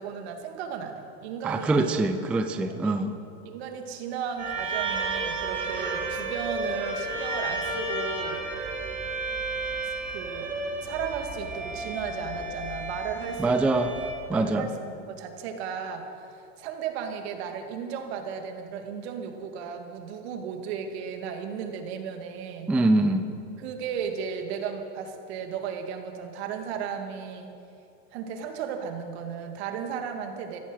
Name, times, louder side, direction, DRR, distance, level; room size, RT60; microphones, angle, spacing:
voice 1, 0.0-1.9 2.6-3.0 3.5-8.4 10.1-10.5 10.8-13.9 14.3-22.7 23.6-27.5 28.1-30.6, right 7 dB, 70° right, 4 dB, 2.2 m, -35 dB
voice 2, 1.4-3.1 13.4-13.9 14.3-14.7 22.7-23.3, right 2 dB, 5° right, 7 dB, 0.3 m, -24 dB
sound 1, 4.4-14.1, right 3 dB, 20° right, 2.7 m, -32 dB
14.5 x 14.0 x 6.3 m, 2.6 s
supercardioid pair, 145°, 33 cm